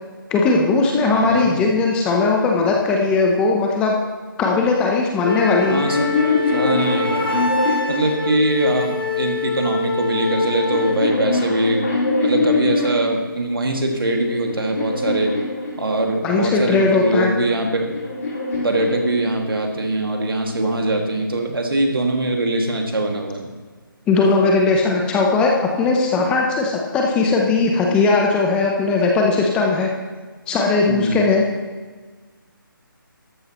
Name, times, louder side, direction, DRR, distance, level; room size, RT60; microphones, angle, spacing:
voice 1, 0.3-3.9 4.4-5.8 16.2-17.3 24.1-29.9 30.5-31.4, left 3 dB, 10° left, 0 dB, 0.7 m, -18 dB
voice 2, 1.0-1.6 5.7-6.0 6.5-7.5 7.9-11.8 12.2-15.3 15.8-17.9 18.6-23.5 30.9-31.2, right 2 dB, 80° right, 2 dB, 2.1 m, -22 dB
Wind instrument woodwind instrument, 5.2-11.1, left 4 dB, 90° left, 1.9 m, -25 dB
sound 1, 5.5-8.9 9.8-13.2 13.9-16.3 17.3-19.7, left 3 dB, 45° left, 3.7 m, -24 dB
13.5 x 11.0 x 3.0 m, 1.4 s
figure-of-eight pair, 160°, 12 cm